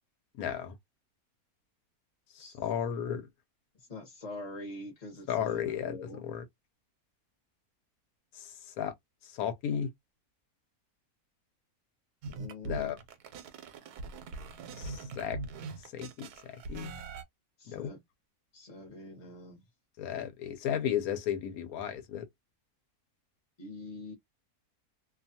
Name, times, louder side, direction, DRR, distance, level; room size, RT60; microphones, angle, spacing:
voice 1, 0.4-0.7 2.3-3.2 5.3-6.4 8.3-8.9 9.2-9.9 12.6-13.0 14.8-15.4 15.9-16.9 17.7-17.9 20.0-22.3, left 9 dB, 75° left, 1.1 m, -34 dB
voice 2, 3.7-6.2 12.3-12.9 17.6-18.0 18.5-19.6 23.6-24.1, left 2 dB, 30° left, 0.8 m, -44 dB
sound 1, 12.2-17.2, right 3 dB, 85° right, 1.1 m, -42 dB
2.6 x 2.3 x 2.7 m
omnidirectional pair, 1.6 m